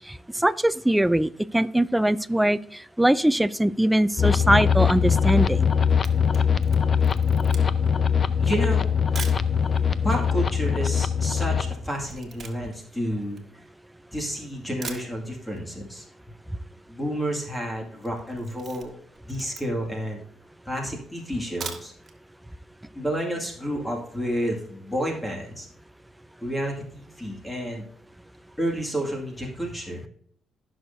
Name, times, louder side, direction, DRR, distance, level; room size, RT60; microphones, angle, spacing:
voice 1, 0.1-5.7, right 1 dB, 5° right, 15 dB, 0.4 m, -22 dB
sound 1, 4.2-11.7, left 7 dB, 40° left, 0.5 m, -22 dB
Camera, 5.9-9.5 10.2-10.3 10.5-14.1 14.5-14.6 14.8-15.7 15.9-16.0 16.3-16.4 16.6-17.0 17.4-17.6 18.0-20.0 20.5-20.6 21.4-22.2 22.5-22.6 23.0-23.1, right 5 dB, 45° right, 1.6 m, -41 dB
voice 2, 8.4-9.2 9.5-9.6 10.0-13.4 14.1-16.1 16.9-19.0 19.3-20.2 20.6-21.9 22.9-25.7 26.4-27.8 28.6-30.1, equal, 10° left, 0 dB, 2.2 m, -30 dB
16.0 x 6.3 x 2.7 m, 0.63 s
cardioid pair, 90°, 0 cm